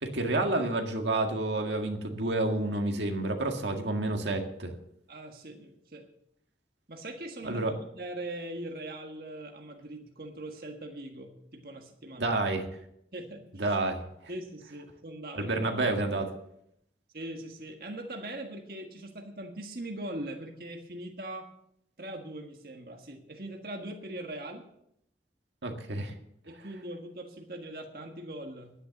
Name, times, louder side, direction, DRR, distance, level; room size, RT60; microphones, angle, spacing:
voice 1, 0.0-4.7 7.4-7.7 12.2-12.7 13.6-14.0 15.4-16.3 25.6-26.1, right 2 dB, 90° right, 3 dB, 1.9 m, -29 dB
voice 2, 5.1-6.1 6.9-12.4 13.1-13.8 14.3-16.2 17.1-21.5 22.0-24.6 26.4-28.7, right 1 dB, 55° right, 3 dB, 1.6 m, -41 dB
11.0 x 9.9 x 7.1 m, 0.75 s
head